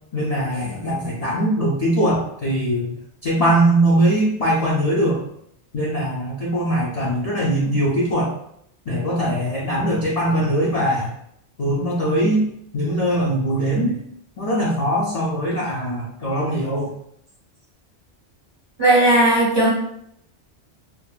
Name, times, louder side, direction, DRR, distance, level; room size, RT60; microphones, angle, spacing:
voice 1, 0.1-2.9 3.2-5.2 5.7-8.3 8.9-11.1 11.6-12.4 12.7-14.0 14.4-16.9, right 1 dB, 55° left, -5 dB, 0.4 m, -21 dB
voice 2, 18.8-19.7, right 1 dB, 30° right, -6 dB, 0.5 m, -15 dB
2.7 x 2.1 x 2.3 m, 0.72 s
omnidirectional pair, 1.2 m